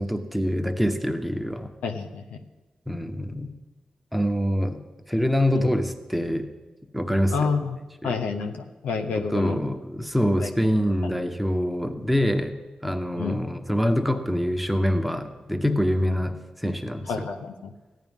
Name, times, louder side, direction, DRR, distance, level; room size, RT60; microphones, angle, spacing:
voice 1, 0.0-1.7 2.9-3.5 4.1-4.8 5.1-6.5 6.9-7.5 8.0-8.2 9.1-12.6 12.8-17.1, equal, ahead, 6 dB, 1.1 m, -25 dB
voice 2, 1.8-2.4 5.5-5.7 7.3-7.8 8.0-9.6 10.4-10.5 11.0-11.1 13.2-13.4 17.1-17.7, left 5 dB, 85° left, 5 dB, 0.6 m, -29 dB
14.0 x 10.5 x 3.6 m, 1.2 s
supercardioid pair, 40°, 2 cm